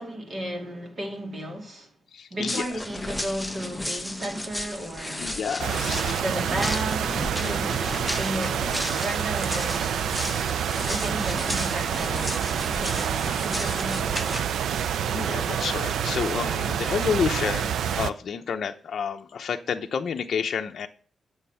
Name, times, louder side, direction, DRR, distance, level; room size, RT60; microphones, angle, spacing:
voice 1, 0.0-1.9 2.3-5.4 6.2-7.1 7.5-7.8 8.2-10.0 10.9-12.3 12.8-14.4, right 1 dB, 35° right, 2.5 m, -34 dB
voice 2, 2.1-2.6 5.2-6.2 7.4-7.8 10.1-11.0 11.7-11.8 13.2-13.7 15.1-20.9, left 7 dB, 55° left, 0.7 m, -30 dB
sound 1, 2.5-14.4, left 1 dB, ahead, 0.9 m, -34 dB
sound 2, 5.6-18.1, right 8 dB, 85° right, 0.5 m, -27 dB
9.7 x 7.1 x 5.6 m
wide cardioid pair, 155°, 0 cm